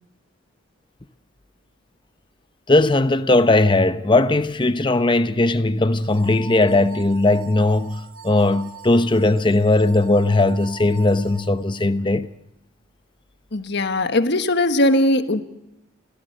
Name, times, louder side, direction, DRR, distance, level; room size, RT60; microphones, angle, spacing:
voice 1, 2.7-12.3, left 2 dB, 25° left, 0.8 m, -18 dB
sound 1, 6.0-11.9, right 4 dB, 80° right, 2.3 m, -42 dB
voice 2, 13.5-15.4, left 1 dB, 55° left, 1.4 m, -19 dB
29.0 x 15.5 x 6.5 m
head